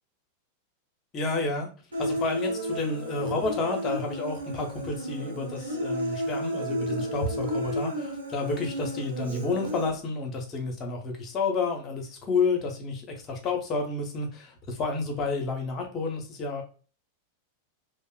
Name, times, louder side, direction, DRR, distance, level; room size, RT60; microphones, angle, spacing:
voice 1, 1.1-1.7 2.0-16.6, left 3 dB, 30° left, 2 dB, 0.7 m, -30 dB
Human voice, 1.9-9.9, equal, 75° right, 0.7 m, -32 dB
2.8 x 2.0 x 2.3 m, 0.38 s
figure-of-eight pair, 90°, 0 cm